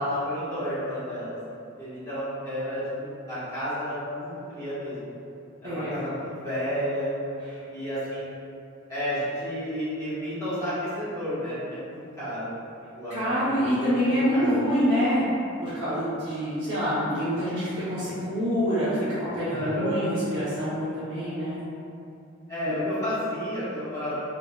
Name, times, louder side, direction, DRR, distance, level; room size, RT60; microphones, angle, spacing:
voice 1, 0.0-1.4 1.8-5.1 5.6-7.1 7.7-8.3 8.9-12.5 12.9-13.1 13.5-14.5 19.5-20.1 22.5-24.2, equal, 15° left, -15 dB, 1.5 m, -31 dB
voice 2, 5.6-6.0 7.5-7.6 13.1-15.2 15.6-18.9 19.3-21.6 22.7-22.8, equal, 90° right, -14 dB, 0.9 m, -26 dB
3.6 x 2.8 x 2.4 m, 2.6 s
head